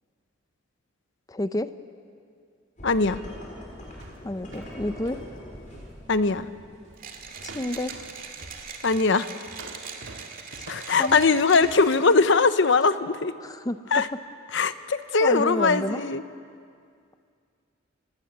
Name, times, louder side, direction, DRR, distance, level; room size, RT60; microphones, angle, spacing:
voice 1, 1.3-1.7 4.2-5.2 7.4-7.9 10.5-10.7 11.0-11.2 13.4-14.0 15.2-16.0, left 1 dB, 15° left, 12 dB, 0.6 m, -30 dB
voice 2, 2.8-3.2 6.1-6.5 8.8-9.3 10.7-13.3 13.9-14.1 14.5-16.2, left 4 dB, 60° left, 12 dB, 0.9 m, -21 dB
sound 1, 2.8-8.7, equal, 40° left, 6.2 m, -44 dB
sound 2, 3.7-5.9 6.2-6.5 6.8-7.1 7.3-11.9, right 2 dB, 65° right, 1.9 m, -47 dB
Mechanisms, 7.0-12.2, right 6 dB, 45° right, 2.2 m, -41 dB
29.0 x 17.5 x 8.1 m, 2.3 s
head